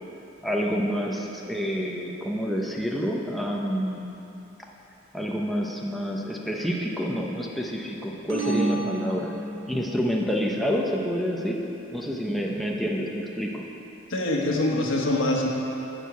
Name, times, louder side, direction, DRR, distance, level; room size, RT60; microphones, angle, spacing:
voice 1, 0.4-4.1 5.1-9.3 9.7-13.6, equal, ahead, -2 dB, 0.7 m, -28 dB
sound 1, 8.3-10.0, right 2 dB, 85° right, 1.6 m, -29 dB
voice 2, 14.1-15.5, left 1 dB, 80° left, -1 dB, 1.4 m, -24 dB
11.5 x 4.6 x 8.2 m, 2.9 s
head